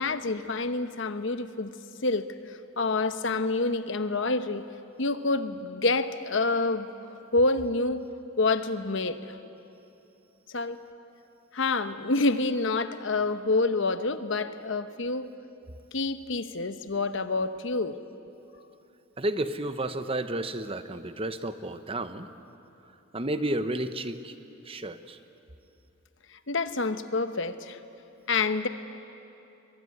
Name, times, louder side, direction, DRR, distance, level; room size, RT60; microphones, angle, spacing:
voice 1, 0.0-1.7 2.0-4.6 5.0-8.0 8.4-9.4 10.5-10.8 11.5-15.3 15.9-18.0 26.3-27.8 28.3-28.7, left 3 dB, 60° left, 10 dB, 1.0 m, -28 dB
voice 2, 19.2-22.3 23.1-24.3 24.7-25.2, right 1 dB, 25° right, 10 dB, 0.9 m, -31 dB
23.5 x 22.5 x 9.7 m, 2.8 s
head